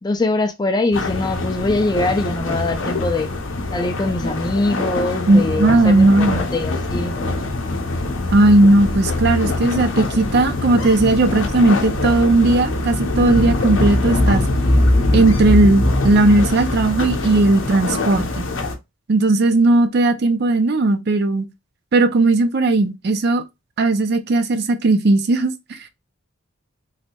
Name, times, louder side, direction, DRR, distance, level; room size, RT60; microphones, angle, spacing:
voice 1, 0.0-3.3 3.7-7.2, left 2 dB, 20° left, 0.3 m, -22 dB
sound 1, 0.9-18.7, left 2 dB, 65° left, 0.6 m, -22 dB
voice 2, 5.3-6.4 8.3-14.4 15.1-18.4 19.1-21.5 21.9-23.4 23.8-25.8, right 2 dB, 50° right, 0.4 m, -16 dB
3.2 x 2.7 x 2.9 m
head